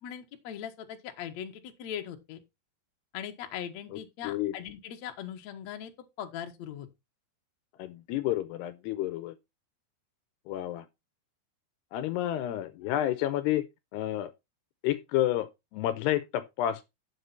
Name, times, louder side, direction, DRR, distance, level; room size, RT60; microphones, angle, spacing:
voice 1, 0.0-2.4 3.1-5.9 6.2-6.9, left 9 dB, 60° left, 1.9 m, -40 dB
voice 2, 3.9-4.6 7.8-9.4 10.5-10.9 11.9-13.7 13.9-14.3 14.8-16.8, left 13 dB, 80° left, 2.6 m, -30 dB
9.6 x 7.4 x 4.3 m
omnidirectional pair, 5.1 m